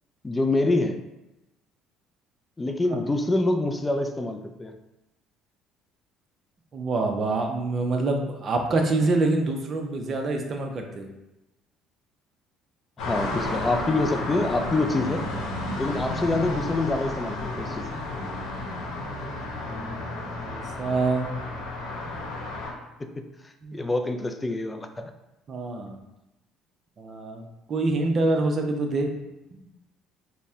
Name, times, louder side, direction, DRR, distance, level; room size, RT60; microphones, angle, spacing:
voice 1, 0.2-1.0 2.6-4.7 13.0-15.3 15.7-17.9 23.7-25.1, left 2 dB, 15° left, 6 dB, 0.3 m, -26 dB
voice 2, 6.7-11.1 19.6-21.3 22.0-22.2 23.6-23.8 25.5-26.0 27.0-29.1, right 2 dB, 40° right, 3 dB, 0.6 m, -26 dB
sound 1, 13.0-22.7, left 2 dB, 85° left, 1.0 m, -32 dB
4.1 x 2.1 x 3.5 m, 0.94 s
cardioid pair, 105°, 0 cm